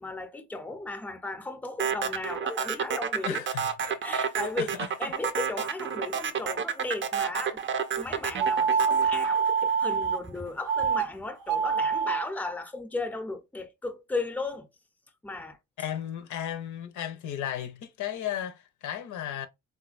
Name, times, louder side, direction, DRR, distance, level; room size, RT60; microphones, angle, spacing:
voice 1, 0.0-3.4 3.8-7.6 8.0-14.7 15.2-15.6, left 3 dB, 5° left, 0.6 m, -36 dB
sound 1, 1.8-10.2, right 7 dB, 40° right, 0.5 m, -30 dB
voice 2, 3.2-3.7 4.6-4.9 15.8-19.5, left 10 dB, 75° left, 0.6 m, -34 dB
sound 2, 8.4-10.2 10.7-11.1 11.4-12.2, right 6 dB, 80° right, 0.7 m, -25 dB
3.7 x 2.2 x 2.4 m
cardioid pair, 90°, 30 cm